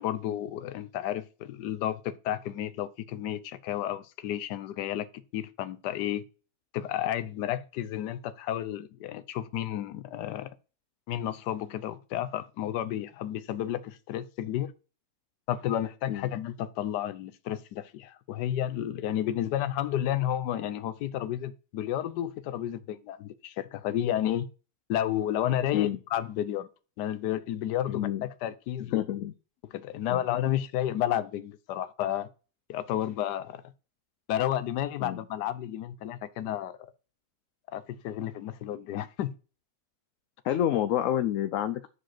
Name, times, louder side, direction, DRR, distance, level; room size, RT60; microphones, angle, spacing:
voice 1, 0.0-5.1 5.3-6.2 6.7-10.5 11.1-14.7 15.5-24.5 24.9-26.7 27.0-29.0 29.7-32.3 32.7-33.6 34.3-36.8 37.7-39.3, left 11 dB, 90° left, 1.3 m, -31 dB
voice 2, 27.9-28.3 28.9-29.3 30.1-30.2 35.0-35.2 40.4-41.9, left 11 dB, 65° left, 0.8 m, -28 dB
6.5 x 5.1 x 5.9 m
omnidirectional pair, 1.7 m